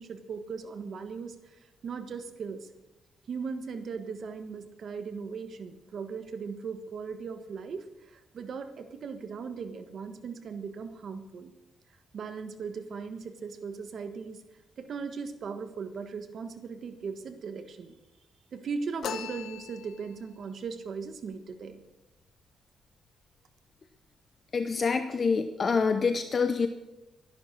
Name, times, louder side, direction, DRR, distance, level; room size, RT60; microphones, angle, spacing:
voice 1, 0.0-2.7 3.3-11.5 12.1-14.4 14.8-17.9 18.5-21.8, right 5 dB, 50° right, 8 dB, 1.4 m, -38 dB
sound 1, 19.0-20.3, left 7 dB, 65° left, 1.0 m, -38 dB
voice 2, 24.5-26.7, left 5 dB, 35° left, 9 dB, 0.7 m, -26 dB
13.0 x 11.0 x 6.3 m, 1.0 s
cardioid pair, 140°, 0 cm